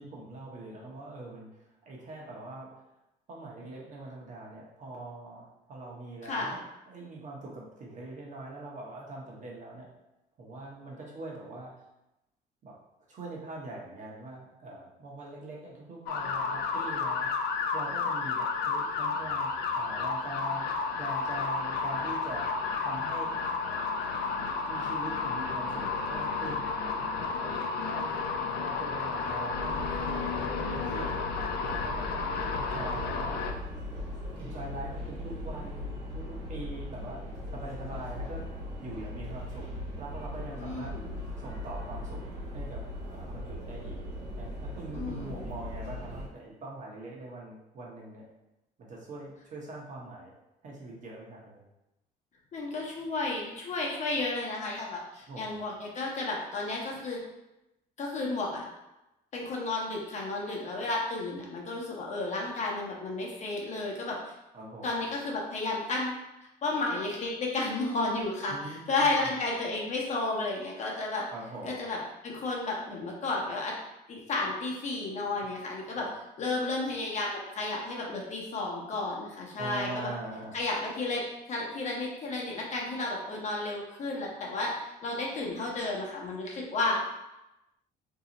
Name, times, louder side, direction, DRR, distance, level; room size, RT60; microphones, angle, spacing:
voice 1, 0.0-1.5 1.8-2.7 3.3-6.6 6.9-9.9 10.4-11.7 12.6-12.8 13.1-20.6 21.0-22.5 22.8-23.3 23.7-23.9 24.7-30.2 30.6-31.3 31.6-33.4 34.1-38.5 38.8-39.7 40.0-40.9 41.4-42.2 42.5-42.8 43.1-44.0 44.4-48.2 48.8-50.3 50.6-51.6 55.3-55.6 64.5-65.0 68.5-69.3 71.3-71.7 75.8-76.1 79.6-80.6, right 2 dB, 45° right, -3 dB, 0.8 m, -43 dB
voice 2, 6.2-6.6 40.6-41.1 44.9-45.4 52.5-57.2 58.0-58.6 59.3-64.3 64.8-66.1 66.6-71.3 71.6-72.0 72.2-73.7 74.1-76.1 76.4-80.1 80.5-84.7 85.0-87.0, left 2 dB, 45° left, -2 dB, 0.8 m, -32 dB
sound 1, 16.1-33.5, left 5 dB, 75° left, 0.4 m, -32 dB
sound 2, 29.5-46.3, left 1 dB, 85° right, 1.1 m, -39 dB
2.7 x 2.0 x 3.8 m, 0.94 s
cardioid pair, 110°, 17 cm